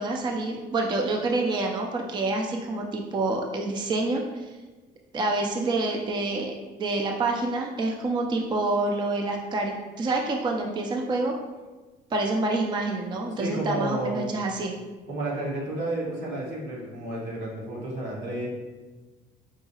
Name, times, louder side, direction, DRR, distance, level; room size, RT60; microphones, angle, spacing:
voice 1, 0.0-4.5 5.1-6.5 6.8-11.3 12.1-14.7, right 2 dB, 25° right, 1 dB, 0.4 m, -27 dB
voice 2, 13.3-14.3 15.1-18.5, right 1 dB, 85° right, -4 dB, 1.2 m, -31 dB
4.7 x 2.7 x 2.8 m, 1.3 s
cardioid pair, 110°, 17 cm